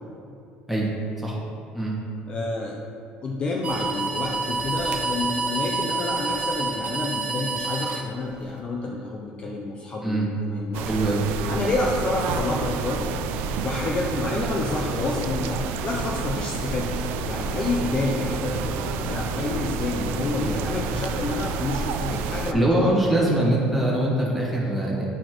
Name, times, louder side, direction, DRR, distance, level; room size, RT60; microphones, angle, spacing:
voice 1, 2.3-2.8 3.2-10.9 11.5-13.0 13.6-16.9 17.3-23.0, left 2 dB, 30° left, -1 dB, 0.5 m, -29 dB
sound 1, 3.6-8.6, right 3 dB, 30° right, 0.6 m, -28 dB
sound 2, 10.7-22.5, right 6 dB, 75° right, 0.3 m, -30 dB
voice 2, 10.8-11.2 20.4-20.6 22.5-25.0, right 1 dB, ahead, -6 dB, 1.5 m, -23 dB
Insect / Frog, 11.7-22.5, left 1 dB, 75° left, 1.3 m, -37 dB
9.8 x 4.2 x 3.0 m, 2.7 s
cardioid pair, 135°, 3 cm